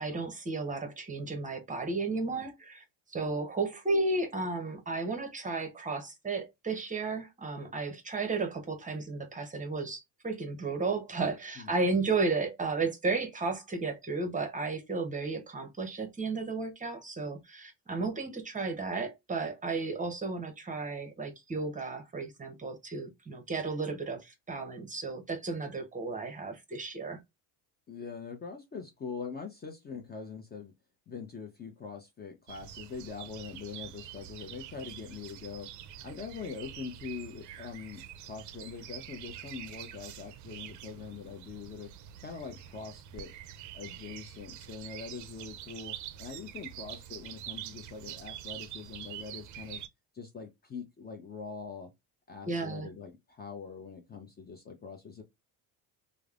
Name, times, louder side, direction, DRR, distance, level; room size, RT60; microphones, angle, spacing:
voice 1, 0.0-2.8 3.1-27.2 52.5-52.9, right 3 dB, 20° right, 0.8 m, -33 dB
voice 2, 27.9-30.7 31.1-35.7 36.0-41.9 42.2-43.3 43.7-49.8 50.1-51.9 52.3-55.2, left 5 dB, 25° left, 0.5 m, -43 dB
sound 1, 32.5-49.9, right 11 dB, 50° right, 0.4 m, -46 dB
3.2 x 2.0 x 2.4 m
supercardioid pair, 95°, 39 cm